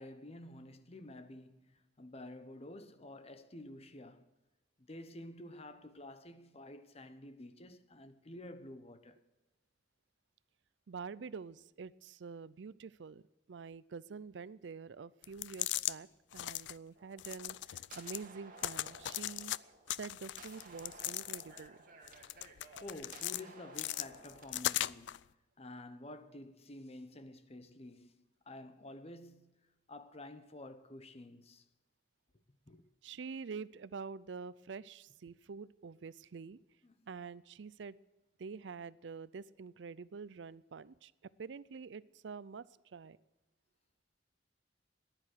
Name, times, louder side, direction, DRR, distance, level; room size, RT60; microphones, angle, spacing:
voice 1, 0.0-4.3 4.8-9.2 22.8-25.2 25.6-28.1 28.5-29.6 29.9-31.6 32.7-32.8 36.8-37.0, left 1 dB, 35° left, 1.0 m, -50 dB
voice 2, 10.9-13.2 13.5-16.1 16.3-19.5 19.9-21.8 33.0-36.6 37.1-38.0 38.4-41.1 41.4-42.7 42.9-43.2, right 5 dB, 80° right, 0.5 m, -47 dB
sound 1, 15.2-15.9 16.3-16.7 17.2-18.2 18.6-19.6 19.9-21.7 22.1-23.4 23.7-25.2, left 14 dB, 75° left, 0.4 m, -38 dB
sound 2, 16.9-24.8, right 3 dB, 50° right, 2.1 m, -57 dB
15.0 x 10.5 x 6.5 m
head